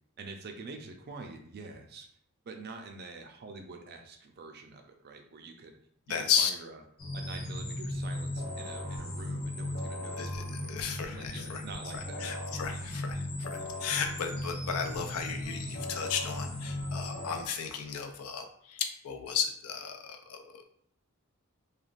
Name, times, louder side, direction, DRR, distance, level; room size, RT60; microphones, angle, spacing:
voice 1, 0.2-2.1 2.4-5.8 6.1-6.8 7.1-12.5, right 3 dB, 45° right, 4 dB, 0.4 m, -46 dB
voice 2, 6.1-6.5 10.2-11.6 12.2-20.6, left 7 dB, 80° left, 6 dB, 0.4 m, -34 dB
sound 1, 7.0-17.4, left 1 dB, 45° left, 0.7 m, -37 dB
3.2 x 2.3 x 2.4 m, 0.64 s
head